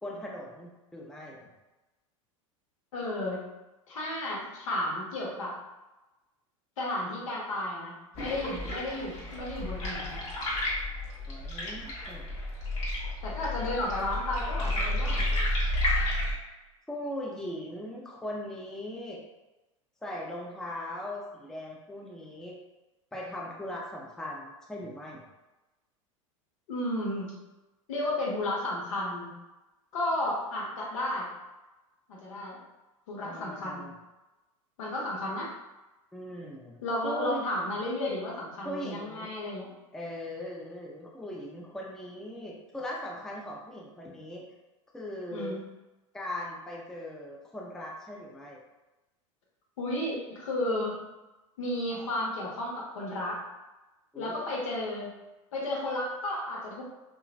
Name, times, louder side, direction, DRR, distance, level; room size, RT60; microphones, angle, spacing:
voice 1, 0.0-1.5 11.3-12.4 16.9-19.2 20.0-22.6 23.1-25.2 33.2-33.9 36.1-37.4 38.6-39.3 39.9-44.4 44.9-45.5 46.1-48.6 54.1-54.4, left 1 dB, 5° left, -3 dB, 0.5 m, -39 dB
voice 2, 2.9-3.4 3.9-5.5 6.8-10.2 13.2-15.2 26.7-27.3 27.9-29.3 29.9-31.3 32.1-32.6 33.1-33.8 34.8-35.5 36.8-39.7 45.3-45.6 49.8-51.0 51.6-53.4 54.1-55.1 55.5-56.8, left 1 dB, 70° left, -3 dB, 0.9 m, -33 dB
sound 1, 8.2-16.3, left 1 dB, 40° left, 1.1 m, -31 dB
2.9 x 2.4 x 2.4 m, 1.1 s
hypercardioid pair, 85°, 17 cm